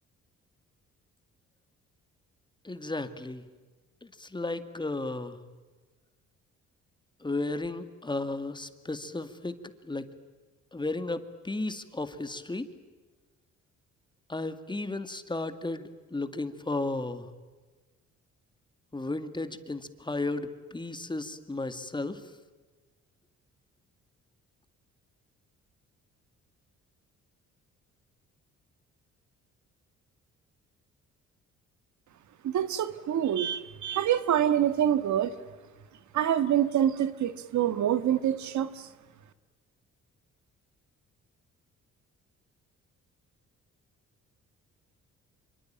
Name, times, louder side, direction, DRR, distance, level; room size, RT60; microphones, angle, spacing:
voice 1, 2.6-3.5 4.0-5.4 7.2-9.6 9.8-10.1 10.7-12.7 14.3-17.3 18.9-22.2, left 2 dB, 15° left, 2.2 m, -34 dB
voice 2, 32.4-35.3 36.1-38.9, right 10 dB, 70° right, 1.7 m, -26 dB
26.5 x 24.5 x 8.9 m
cardioid pair, 90°, 30 cm